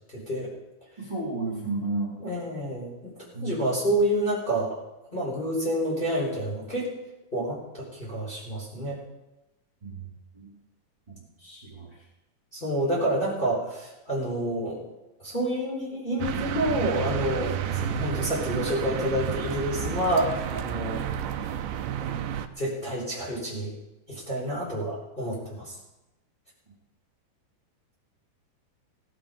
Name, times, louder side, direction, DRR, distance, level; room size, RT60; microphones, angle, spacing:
voice 1, 0.1-0.5 2.2-3.1 3.4-4.8 5.1-6.9 7.3-9.0 12.5-14.8 15.2-21.0 22.0-22.1 22.6-23.7 24.1-25.8, right 1 dB, 15° left, -5 dB, 4.4 m, -28 dB
voice 2, 1.0-2.2 3.3-3.9 9.8-10.6 11.1-12.1 17.7-18.2, right 2 dB, 15° right, -7 dB, 4.4 m, -34 dB
sound 1, 16.2-22.5, right 9 dB, 85° right, 2.4 m, -31 dB
17.5 x 12.0 x 5.3 m, 0.96 s
omnidirectional pair, 3.7 m